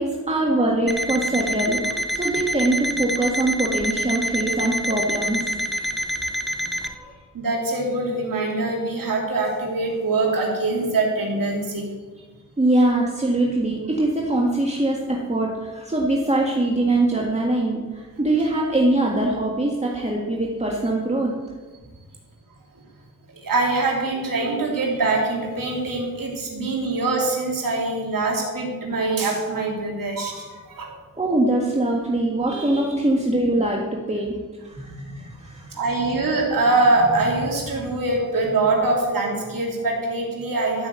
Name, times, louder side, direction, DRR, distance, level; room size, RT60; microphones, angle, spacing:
voice 1, 0.0-5.5 6.8-7.2 12.6-21.3 31.1-34.3 34.6-35.7, right 2 dB, 20° right, -2 dB, 1.8 m, -23 dB
Alarm, 0.9-6.9, equal, ahead, 1.1 m, -27 dB
voice 2, 7.3-11.9 23.3-30.9 34.7-35.1 35.7-40.9, right 2 dB, 75° right, -2 dB, 3.0 m, -23 dB
13.0 x 6.1 x 8.2 m, 1.4 s
cardioid pair, 75°, 34 cm